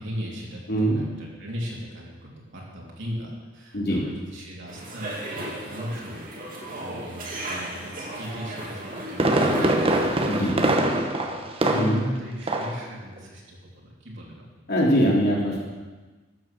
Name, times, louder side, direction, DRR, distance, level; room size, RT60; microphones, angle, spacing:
voice 1, 0.0-10.5 11.2-14.4, equal, 60° right, -3 dB, 3.1 m, -38 dB
voice 2, 0.7-1.0 3.7-4.0 10.3-10.5 11.7-12.0 14.7-15.6, equal, 50° left, -4 dB, 3.2 m, -22 dB
sound 1, 4.7-10.5, right 1 dB, 45° right, 2.2 m, -35 dB
Fireworks, 8.7-12.2 12.5-12.8 13.2-13.3, right 1 dB, 25° right, 1.0 m, -23 dB
12.5 x 8.1 x 6.1 m, 1.3 s
head